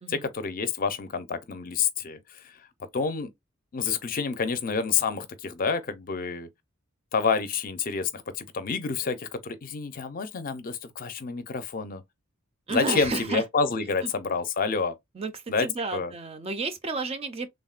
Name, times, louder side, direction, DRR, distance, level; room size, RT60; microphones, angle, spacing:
voice 1, 0.1-2.6 2.9-3.3 3.7-6.5 7.1-12.0 12.7-14.9 15.5-16.1, left 5 dB, 40° left, 0.5 m, -28 dB
voice 2, 12.7-13.4 14.0-14.1 15.1-17.5, right 3 dB, 30° right, 0.4 m, -31 dB
3.4 x 2.1 x 2.4 m
head